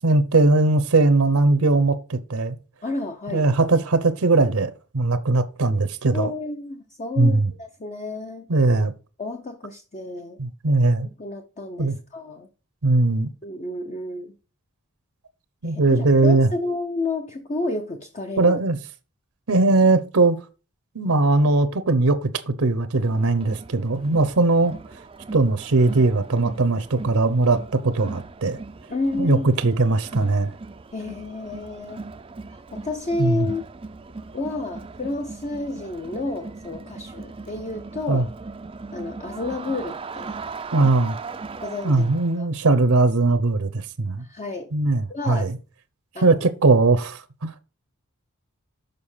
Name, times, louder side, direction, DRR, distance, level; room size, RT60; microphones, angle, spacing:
voice 1, 0.0-2.6 3.3-6.3 7.2-7.5 8.5-8.9 10.4-11.1 11.8-12.0 12.8-13.3 15.6-16.5 18.4-18.8 19.5-20.4 20.9-24.7 25.3-28.6 29.2-30.5 33.2-33.5 38.1-38.2 40.7-41.1 41.8-44.2 44.7-45.5 46.2-47.6, right 3 dB, 70° right, 0.8 m, -20 dB
voice 2, 2.8-3.5 6.1-8.5 9.2-10.4 11.0-12.5 13.4-14.3 15.6-18.6 28.9-29.5 30.9-32.1 32.5-33.6 34.3-38.3 38.9-40.4 41.6-42.1 42.4-42.5 44.2-44.7 45.1-45.5 46.1-46.4, left 2 dB, 30° left, 0.7 m, -30 dB
Crowd, 23.0-42.4, right 4 dB, 25° right, 0.4 m, -39 dB
6.8 x 5.3 x 5.6 m
head